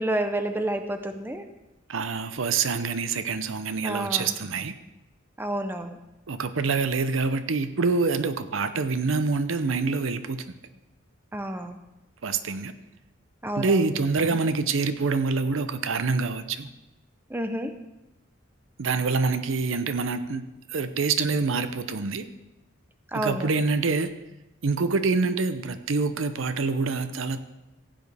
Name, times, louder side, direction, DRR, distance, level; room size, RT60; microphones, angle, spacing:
voice 1, 0.0-1.5 3.8-4.3 5.4-6.0 11.3-11.8 13.4-13.9 17.3-17.7 23.1-23.5, right 1 dB, 10° right, 7 dB, 0.6 m, -29 dB
voice 2, 1.9-4.7 6.3-10.5 12.2-12.7 13.6-16.7 18.8-20.4 20.7-22.3 23.1-24.1 24.6-27.4, right 4 dB, 85° right, 11 dB, 0.7 m, -26 dB
15.0 x 8.7 x 3.4 m, 0.99 s
head